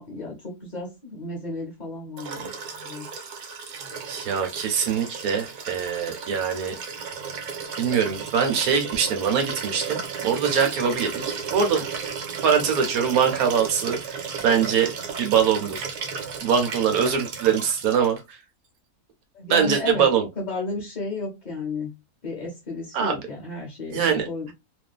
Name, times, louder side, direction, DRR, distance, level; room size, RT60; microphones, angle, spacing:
voice 1, 0.0-3.1 19.3-20.1 20.4-21.9 22.2-24.5, left 2 dB, 45° left, 0.6 m, -33 dB
Liquid, 2.2-18.2 19.5-19.6, right 6 dB, 90° right, 1.4 m, -34 dB
voice 2, 4.1-6.7 7.8-11.8 12.4-15.9 16.4-18.4 19.5-20.3 22.9-23.2 23.9-24.3, right 7 dB, 70° right, 1.2 m, -23 dB
2.6 x 2.5 x 2.3 m
omnidirectional pair, 1.6 m